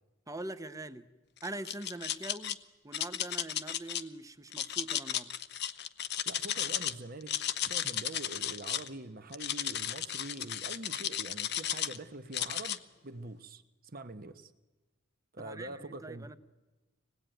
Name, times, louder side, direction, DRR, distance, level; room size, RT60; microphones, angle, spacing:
voice 1, 0.3-1.1 1.4-2.6 2.8-5.3 15.4-16.4, right 2 dB, 15° right, 0.8 m, -43 dB
sound 1, 1.4-2.5 2.9-4.0 4.5-6.9 7.2-8.9 9.3-12.0 12.3-12.8, left 10 dB, 55° left, 0.8 m, -34 dB
voice 2, 6.2-14.5 15.3-16.3, right 2 dB, 45° right, 1.1 m, -45 dB
25.5 x 19.0 x 9.1 m
head